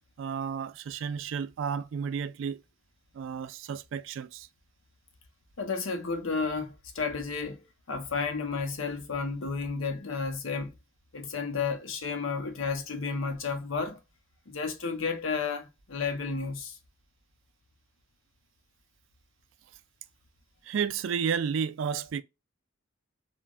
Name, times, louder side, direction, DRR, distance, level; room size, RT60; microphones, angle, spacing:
voice 1, 0.2-2.6 3.1-4.5 20.6-22.2, right 7 dB, 65° right, 0.3 m, -32 dB
voice 2, 5.6-10.7 11.1-14.0 14.5-16.8, left 4 dB, 80° left, 0.8 m, -32 dB
3.3 x 2.1 x 2.4 m
head